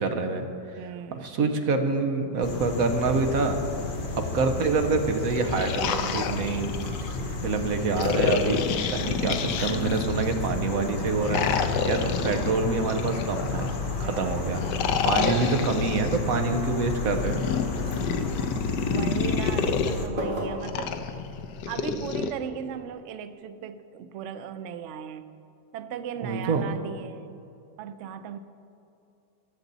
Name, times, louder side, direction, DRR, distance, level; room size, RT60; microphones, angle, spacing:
voice 1, 0.0-0.8 1.1-3.6 4.1-6.8 7.4-8.6 9.0-11.4 11.8-13.7 14.0-17.5 26.2-26.7, right 4 dB, 60° right, 6 dB, 1.2 m, -26 dB
voice 2, 0.8-1.3 14.0-14.4 15.3-15.7 18.9-21.0 21.7-25.3 25.7-27.4 27.8-28.4, right 8 dB, 90° right, 10 dB, 0.6 m, -37 dB
sound 1, 2.4-20.1, left 3 dB, 40° left, 0.8 m, -32 dB
sound 2, 3.6-22.2, left 1 dB, 30° right, 2.1 m, -43 dB
sound 3, 5.2-7.2 8.0-10.3 11.2-13.7 14.5-16.2 17.1-19.9 20.6-22.3, left 6 dB, 75° left, 1.2 m, -29 dB
19.0 x 7.1 x 4.0 m, 2.6 s
omnidirectional pair, 1.9 m